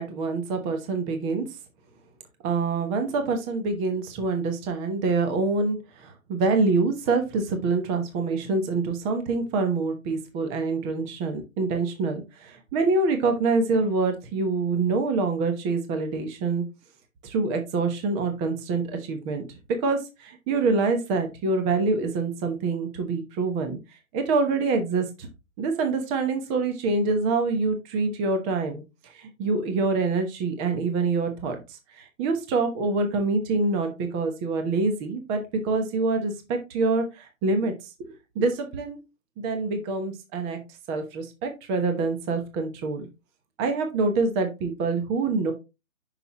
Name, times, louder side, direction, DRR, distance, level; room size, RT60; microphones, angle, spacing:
voice 1, 0.0-1.4 2.4-16.6 17.2-19.4 19.8-23.8 24.1-25.3 25.6-28.8 29.1-37.9 38.3-39.0 39.4-40.6 40.9-43.1 43.6-45.5, right 3 dB, 15° right, 6 dB, 0.9 m, -26 dB
9.0 x 5.8 x 3.0 m, 0.27 s
hypercardioid pair, 145°, 41 cm